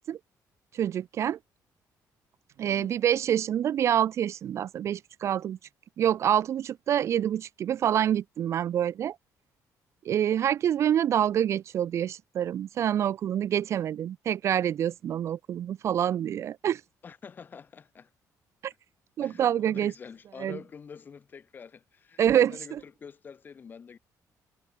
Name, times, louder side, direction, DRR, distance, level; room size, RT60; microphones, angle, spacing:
voice 1, 0.7-1.4 2.6-5.6 6.0-9.2 10.1-16.8 18.6-18.7 19.2-19.9 20.4-20.6 22.2-22.8, right 10 dB, 45° right, 0.7 m, -26 dB
voice 2, 2.6-3.0 17.0-18.1 19.2-24.0, left 6 dB, 30° left, 5.1 m, -46 dB
cardioid pair, 175°, 7 cm